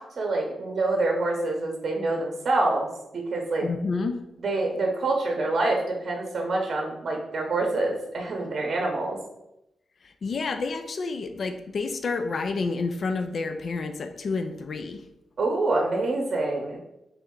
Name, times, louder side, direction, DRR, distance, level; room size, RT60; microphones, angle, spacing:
voice 1, 0.0-3.7 4.4-9.2 15.4-16.8, right 2 dB, 55° right, 1 dB, 0.8 m, -26 dB
voice 2, 3.6-4.2 10.0-15.0, left 4 dB, 55° left, 7 dB, 0.3 m, -29 dB
4.1 x 3.4 x 3.7 m, 0.88 s
wide cardioid pair, 120°, 0 cm